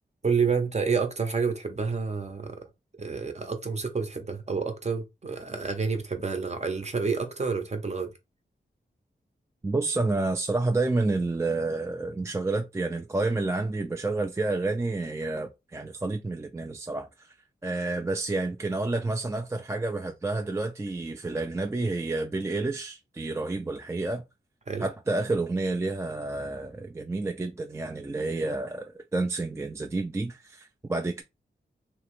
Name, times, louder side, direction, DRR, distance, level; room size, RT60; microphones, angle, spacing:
voice 1, 0.2-2.6 3.0-8.1 24.7-24.8, right 5 dB, 35° right, 0.7 m, -29 dB
voice 2, 9.6-17.3 17.6-24.2 24.8-31.2, right 2 dB, 15° right, 0.3 m, -29 dB
2.9 x 2.1 x 3.0 m
wide cardioid pair, 65°, 19 cm